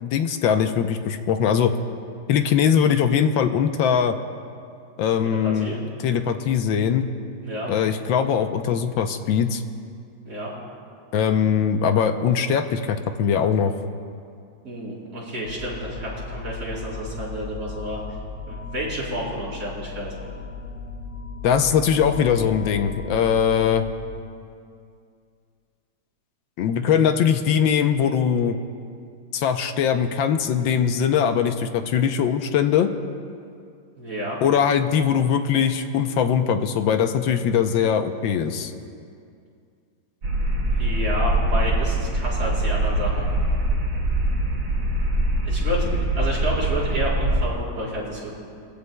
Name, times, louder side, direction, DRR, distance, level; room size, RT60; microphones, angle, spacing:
voice 1, 0.0-1.7 2.3-4.2 5.0-5.8 6.0-7.1 7.7-9.6 11.1-13.7 21.4-23.9 26.6-28.6 29.3-32.9 34.4-38.7, left 7 dB, 75° left, 7 dB, 1.4 m, -21 dB
voice 2, 5.2-5.8 7.4-7.7 10.2-10.5 14.6-18.0 18.5-20.1 34.0-34.4 40.8-43.3 45.4-48.3, right 1 dB, 45° right, -7 dB, 4.3 m, -30 dB
sound 1, 15.4-24.2, left 4 dB, 55° left, 2.3 m, -36 dB
sound 2, 40.2-47.5, right 1 dB, 80° right, 2.9 m, -23 dB
22.5 x 15.5 x 2.2 m, 2.3 s
omnidirectional pair, 2.2 m